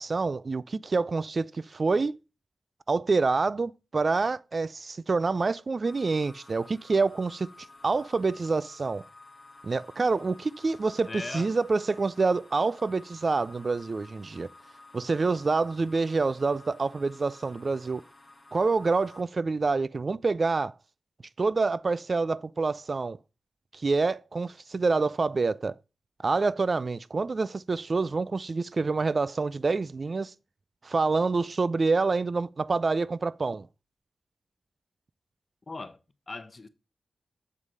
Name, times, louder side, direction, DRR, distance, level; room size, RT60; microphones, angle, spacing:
voice 1, 0.0-2.1 2.9-7.5 7.8-9.1 9.6-14.5 14.9-18.0 18.5-20.7 21.4-23.2 23.7-25.7 26.2-30.3 30.8-33.7, right 4 dB, 50° right, 0.3 m, -27 dB
sound 1, 5.8-19.2, left 2 dB, 15° left, 2.1 m, -53 dB
voice 2, 11.1-11.5 35.7-36.0 36.3-36.7, left 3 dB, 40° left, 0.9 m, -38 dB
7.4 x 4.8 x 5.4 m
cardioid pair, 60°, 0 cm